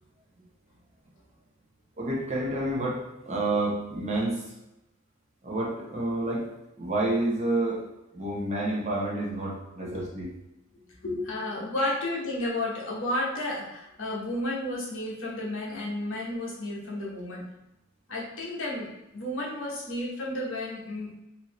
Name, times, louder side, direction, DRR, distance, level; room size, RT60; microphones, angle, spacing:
voice 1, 2.0-4.4 5.4-6.5 6.8-7.9 8.1-10.3 11.8-11.9, right 2 dB, 35° right, -3 dB, 0.8 m, -29 dB
voice 2, 9.8-10.3 11.0-17.4 18.1-21.2, left 1 dB, 65° left, -4 dB, 1.1 m, -32 dB
4.0 x 2.7 x 3.0 m, 0.92 s
head